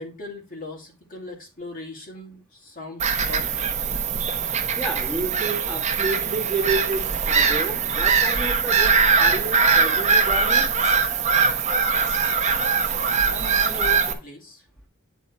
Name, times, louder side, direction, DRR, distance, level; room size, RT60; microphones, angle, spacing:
voice 1, 0.0-3.5 13.3-14.9, left 3 dB, 40° left, 2.3 m, -38 dB
Bird vocalization bird call bird song / Gull seagull, 3.0-14.1, right 5 dB, 35° right, 1.0 m, -21 dB
voice 2, 4.8-10.7, right 3 dB, 5° left, 1.8 m, -30 dB
9.1 x 4.1 x 4.7 m
head